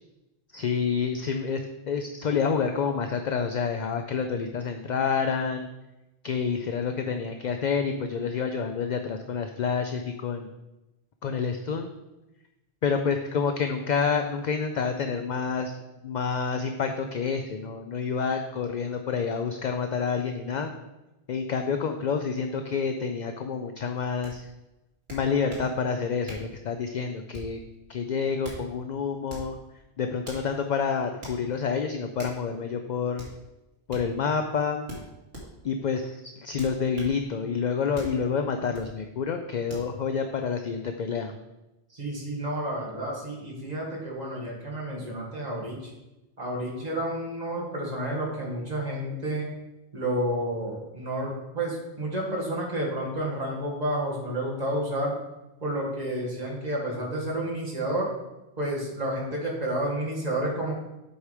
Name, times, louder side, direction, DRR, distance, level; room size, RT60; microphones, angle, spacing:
voice 1, 0.5-5.7 6.2-10.5 11.2-11.9 12.8-15.7 16.0-20.7 21.3-24.5 25.1-27.6 27.9-29.6 30.0-33.3 33.9-34.9 35.6-41.3, left 6 dB, 55° left, 6 dB, 0.6 m, -28 dB
sound 1, 24.2-24.3 25.1-25.7 26.3-26.5 27.3-27.6 28.2-28.6 29.3-29.5 30.2-30.5 31.2-31.4 32.2-32.4 33.2-33.3 33.9-34.1 34.9-35.5 36.6-37.2 37.9-38.2 38.7-38.9 39.7-39.9, equal, 75° right, 2.4 m, -41 dB
voice 2, 41.9-45.9 46.4-49.5 49.9-55.1 55.6-58.1 58.6-60.7, right 1 dB, 40° right, -4 dB, 2.0 m, -30 dB
8.0 x 4.8 x 5.0 m, 1.0 s
omnidirectional pair, 1.0 m